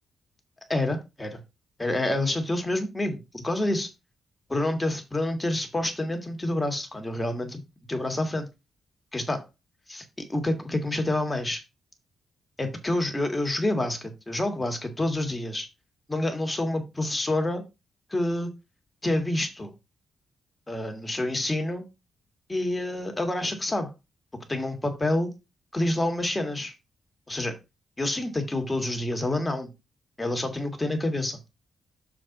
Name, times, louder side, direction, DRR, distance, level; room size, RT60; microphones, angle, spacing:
voice 1, 0.7-1.4 1.8-3.9 4.5-7.6 7.9-8.5 9.1-9.4 9.9-11.6 12.6-15.7 16.1-17.6 18.1-18.5 19.0-19.7 20.7-21.9 22.5-23.9 24.5-25.3 25.7-26.7 27.3-27.6 28.0-29.7 30.2-31.4, left 1 dB, 15° left, 1.8 m, -28 dB
6.9 x 4.4 x 5.2 m
cardioid pair, 130°, 0 cm